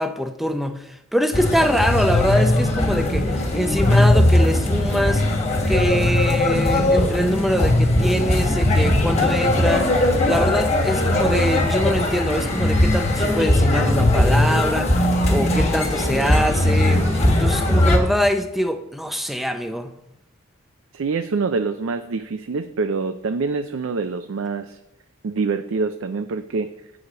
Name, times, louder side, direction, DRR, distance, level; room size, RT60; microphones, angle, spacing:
voice 1, 0.0-5.4 5.7-19.9, equal, ahead, 7 dB, 0.5 m, -24 dB
sound 1, 1.3-18.0, left 1 dB, 30° left, 1.4 m, -19 dB
voice 2, 20.9-24.8 25.2-26.7, right 4 dB, 70° right, 9 dB, 0.4 m, -25 dB
8.1 x 4.9 x 7.3 m, 0.86 s
head